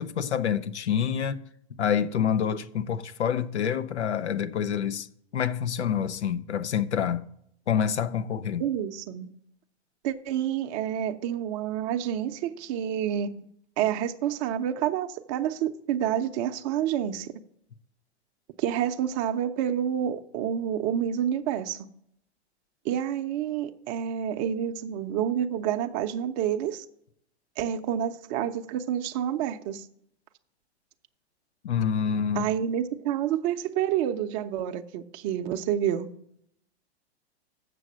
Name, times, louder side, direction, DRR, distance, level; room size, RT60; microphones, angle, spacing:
voice 1, 0.0-1.4 1.8-5.1 5.3-7.2 7.7-8.7 31.6-32.5, left 8 dB, 85° left, 0.7 m, -27 dB
voice 2, 8.6-9.3 10.0-13.5 13.8-17.3 18.6-21.9 22.8-26.8 27.6-29.8 32.4-36.1, right 10 dB, 40° right, 0.6 m, -28 dB
7.6 x 6.4 x 6.2 m
hypercardioid pair, 110°, 33 cm